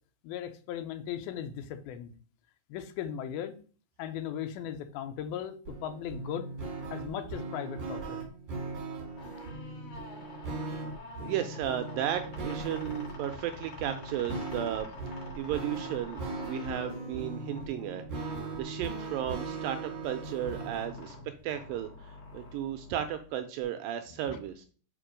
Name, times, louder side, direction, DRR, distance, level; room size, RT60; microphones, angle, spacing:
voice 1, 0.2-2.1 2.7-3.6 4.0-6.5 6.9-8.2 24.3-24.4, left 9 dB, 80° left, 8 dB, 2.5 m, -37 dB
sound 1, 5.6-21.0, right 3 dB, 35° right, 2.2 m, -39 dB
sound 2, 9.1-23.6, left 3 dB, 55° left, 2.6 m, -47 dB
voice 2, 11.2-14.9 15.4-18.0 18.5-21.2 21.4-24.7, right 11 dB, 80° right, 8 dB, 2.0 m, -34 dB
5.2 x 5.2 x 5.0 m, 0.42 s
omnidirectional pair, 4.4 m